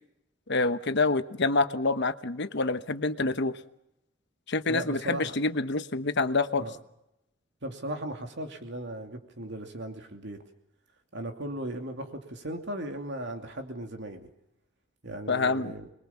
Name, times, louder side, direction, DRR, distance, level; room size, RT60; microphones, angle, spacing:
voice 1, 0.5-3.6 4.5-6.6 15.3-15.7, left 3 dB, 60° left, 11 dB, 1.1 m, -27 dB
voice 2, 4.7-5.3 6.6-6.7 7.6-10.4 11.1-14.2 15.0-15.9, right 1 dB, 65° right, 5 dB, 2.8 m, -37 dB
25.5 x 21.5 x 7.1 m, 0.85 s
head